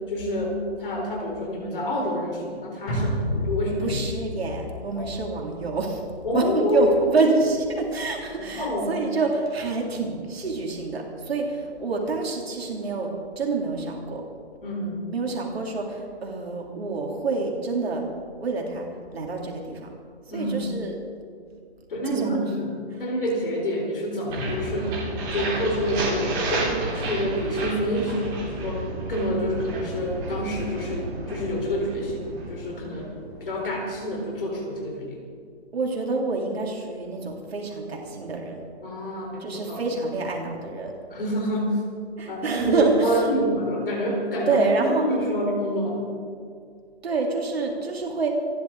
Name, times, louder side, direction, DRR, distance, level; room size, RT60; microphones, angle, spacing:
voice 1, 0.1-4.0 4.9-5.0 6.2-7.1 8.5-8.9 14.6-15.1 20.3-20.7 21.9-25.0 25.3-28.8 29.1-33.1 33.4-35.2 38.8-39.8 41.1-41.8 42.3-46.1, equal, 55° left, -1 dB, 4.4 m, -27 dB
sound 1, 2.9-7.3 7.6-7.7, left 1 dB, 30° left, 5.4 m, -32 dB
voice 2, 3.8-6.0 6.3-14.2 15.1-18.0 18.4-18.9 19.1-19.9 20.3-21.0 22.1-22.5 22.9-23.0 35.7-38.6 39.4-40.9 42.2-43.3 44.5-45.0 47.0-48.3, right 3 dB, 65° right, 0 dB, 3.2 m, -27 dB
sound 2, 24.3-34.1, right 2 dB, 15° right, 3.9 m, -31 dB
28.0 x 11.5 x 4.0 m, 2.2 s
hypercardioid pair, 175°, 33 cm